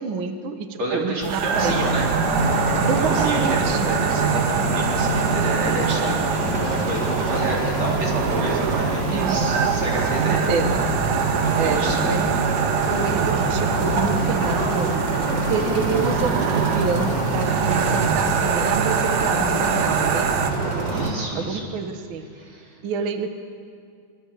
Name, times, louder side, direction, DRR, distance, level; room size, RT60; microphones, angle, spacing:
voice 1, 0.0-1.9 2.9-3.9 9.1-9.6 10.3-10.9 11.5-12.4 12.9-15.0 15.4-20.5 21.3-22.3 22.8-23.3, right 5 dB, 65° right, 7 dB, 1.2 m, -28 dB
voice 2, 0.8-2.1 2.8-10.5 11.4-12.1 20.9-21.7 22.3-22.8, right 2 dB, 50° right, -2 dB, 4.9 m, -30 dB
sound 1, 1.2-20.5, right 7 dB, 90° right, 3.1 m, -26 dB
sound 2, 1.5-21.1, right 2 dB, 30° right, 4.2 m, -24 dB
24.0 x 21.5 x 8.4 m, 2.2 s
omnidirectional pair, 4.0 m